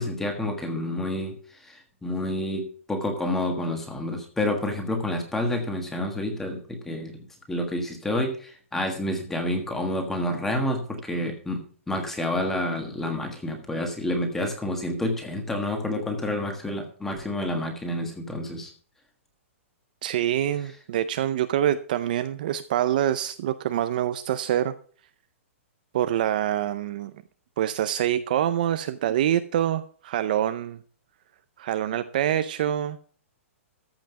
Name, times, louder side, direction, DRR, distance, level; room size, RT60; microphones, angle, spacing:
voice 1, 0.0-18.7, left 1 dB, 5° left, 1.5 m, -29 dB
voice 2, 20.0-24.7 25.9-27.1 27.6-30.8 31.6-33.0, right 11 dB, 40° right, 0.5 m, -25 dB
14.0 x 5.8 x 5.8 m
hypercardioid pair, 175°, 7 cm